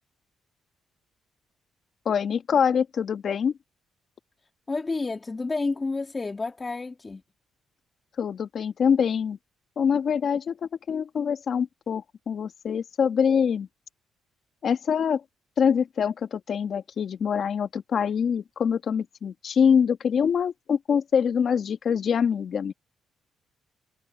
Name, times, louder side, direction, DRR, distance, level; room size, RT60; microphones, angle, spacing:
voice 1, 2.0-3.5 8.2-9.4 9.8-13.7 14.6-15.2 15.6-22.7, left 7 dB, 55° left, 1.4 m, -24 dB
voice 2, 4.7-7.2, left 3 dB, 25° left, 2.2 m, -30 dB
cardioid pair, 90°, 0 cm